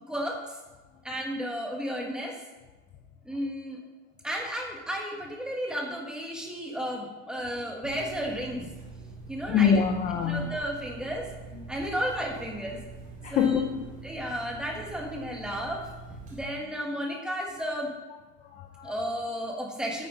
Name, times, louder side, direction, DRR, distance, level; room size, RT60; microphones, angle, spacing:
voice 1, 0.1-0.4 1.0-2.4 3.2-3.8 4.2-8.7 9.3-9.8 10.2-11.3 11.7-12.8 13.3-13.6 14.0-15.9 16.3-17.9 18.8-20.1, equal, ahead, -1 dB, 1.4 m, -33 dB
sound 1, 7.8-16.4, right 4 dB, 20° right, 2.3 m, -44 dB
voice 2, 9.5-10.6 13.2-14.0 18.5-18.9, left 7 dB, 20° left, 5 dB, 0.4 m, -25 dB
9.4 x 8.1 x 5.2 m, 1.2 s
supercardioid pair, 160°, 40 cm